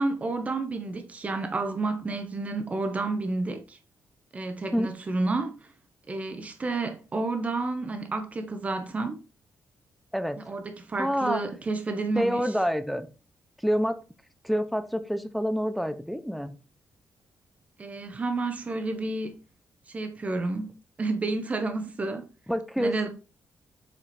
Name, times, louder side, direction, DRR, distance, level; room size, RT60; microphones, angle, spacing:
voice 1, 0.0-3.8 4.3-5.5 6.1-9.2 10.5-12.4 17.8-19.3 19.9-20.7 21.0-22.3 22.8-23.1, right 3 dB, 25° right, 1.0 m, -30 dB
voice 2, 10.1-10.6 11.0-11.4 12.2-13.1 13.6-14.0 14.4-16.5 22.5-23.1, equal, ahead, 0.6 m, -27 dB
7.4 x 4.9 x 4.2 m
wide cardioid pair, 160°, 6 cm